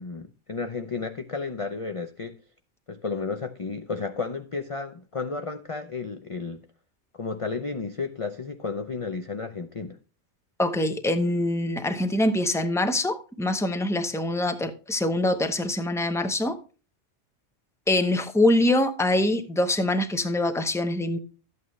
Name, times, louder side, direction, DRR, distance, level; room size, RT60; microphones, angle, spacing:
voice 1, 0.0-2.4 2.9-6.6 7.1-10.0, left 4 dB, 35° left, 0.6 m, -32 dB
voice 2, 10.6-16.6 17.9-21.2, left 1 dB, 5° left, 0.8 m, -24 dB
12.5 x 8.4 x 3.2 m
omnidirectional pair, 1.2 m